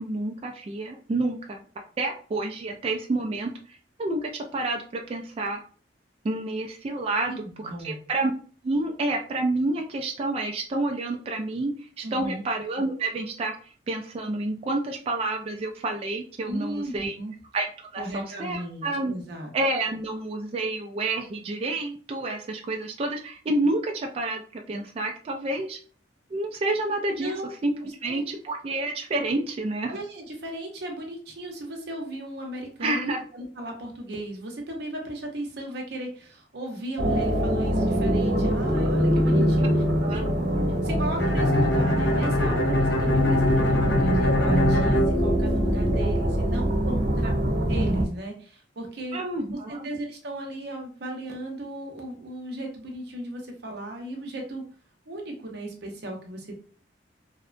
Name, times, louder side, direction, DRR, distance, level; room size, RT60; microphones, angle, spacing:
voice 1, 0.0-1.6 2.0-4.8 5.1-5.6 6.2-7.3 7.6-8.3 8.6-11.7 12.0-13.6 13.9-17.1 17.5-17.7 17.9-19.1 19.5-25.8 26.3-27.3 27.6-27.7 28.0-30.0 32.8-33.2 40.0-40.3 49.1-49.9, right 2 dB, 35° right, 2 dB, 0.3 m, -29 dB
voice 2, 7.3-8.0 12.0-12.4 16.4-17.3 18.0-19.5 27.1-27.5 28.0-28.2 29.9-39.8 40.1-40.3 40.8-47.3 47.7-49.2 49.7-54.6 55.1-56.6, right 1 dB, 65° right, 1 dB, 0.7 m, -36 dB
sound 1, 37.0-48.0, equal, 85° right, 1.0 m, -24 dB
Bowed string instrument, 41.2-46.0, left 1 dB, 65° left, 0.7 m, -24 dB
2.7 x 2.1 x 2.4 m, 0.42 s
head